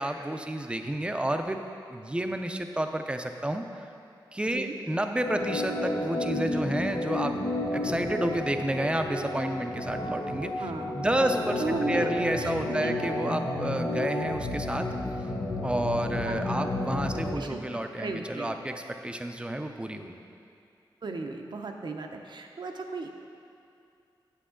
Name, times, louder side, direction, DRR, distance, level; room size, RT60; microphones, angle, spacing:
voice 1, 0.0-1.6 1.9-3.6 4.3-7.3 7.7-10.7 10.9-14.9 15.6-20.2, right 1 dB, 10° right, 6 dB, 0.5 m, -30 dB
Organ, 5.2-17.4, left 2 dB, 80° left, 1.0 m, -31 dB
voice 2, 10.6-11.0 11.6-12.1 12.4-13.0 16.3-16.7 17.4-18.6 21.0-23.1, right 3 dB, 65° right, 3 dB, 0.7 m, -35 dB
8.4 x 7.7 x 3.8 m, 2.5 s
wide cardioid pair, 85°, 8 cm